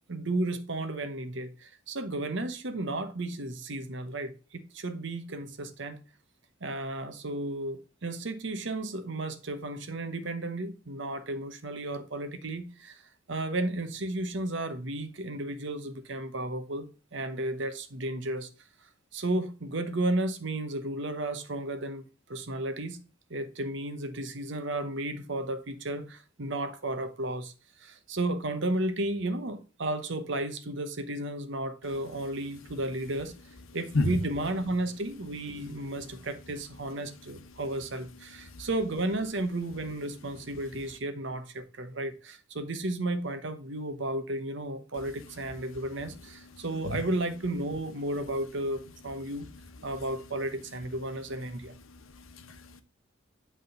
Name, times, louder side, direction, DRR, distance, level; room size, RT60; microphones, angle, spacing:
voice 1, 0.1-6.0 6.6-13.0 13.3-16.9 17.1-18.5 19.1-23.0 23.3-27.5 27.8-33.3 33.7-49.5 49.8-51.7, right 1 dB, 60° right, 0.9 m, -33 dB
voice 2, 51.9-52.8, left 2 dB, 85° left, 0.9 m, -31 dB
8.1 x 3.7 x 5.4 m
head